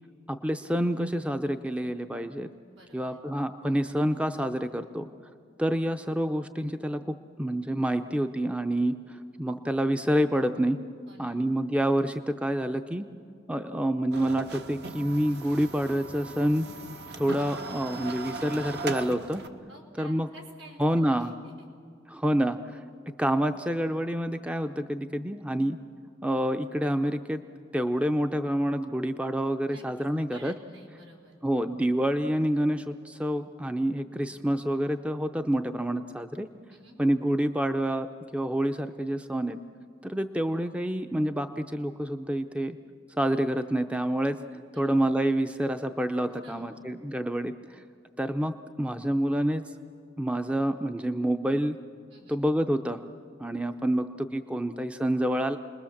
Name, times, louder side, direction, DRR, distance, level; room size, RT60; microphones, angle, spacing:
voice 1, 0.3-2.5 2.9-5.1 5.6-10.8 11.2-13.1 13.5-16.7 17.2-19.4 20.0-20.3 20.8-21.3 22.1-22.8 23.2-25.8 26.2-27.4 27.7-30.5 31.4-36.5 37.0-38.1 38.3-39.6 40.0-42.8 43.2-47.8 48.2-49.6 50.2-51.8 52.3-53.0 53.4-55.6, right 1 dB, 5° right, 8 dB, 0.5 m, -28 dB
voice 2, 2.7-3.2 11.1-11.4 19.7-21.5 29.7-31.8 36.7-37.0 44.7-44.9 46.4-46.9 52.1-52.4, right 1 dB, 85° right, 0 dB, 4.5 m, -52 dB
sound 1, 14.1-19.5, right 3 dB, 65° right, 1.1 m, -38 dB
29.5 x 20.5 x 7.2 m, 2.2 s
head